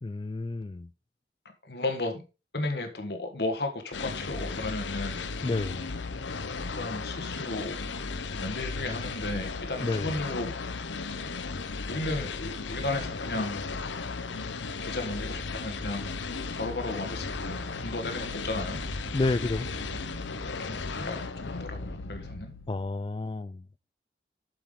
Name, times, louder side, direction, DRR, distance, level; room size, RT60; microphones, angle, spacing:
voice 1, 0.0-0.9 5.4-5.9 9.8-10.1 19.1-19.7 22.7-23.6, left 3 dB, 25° left, 0.3 m, -30 dB
voice 2, 1.6-2.2 2.5-5.3 6.7-7.8 8.3-10.6 11.9-13.7 14.8-16.2 16.5-18.8 20.3-22.5, left 2 dB, 65° left, 1.5 m, -34 dB
sound 1, 3.9-22.9, left 4 dB, 90° left, 0.7 m, -36 dB
sound 2, 13.0-22.9, right 2 dB, 50° right, 1.4 m, -47 dB
7.6 x 6.9 x 3.7 m
head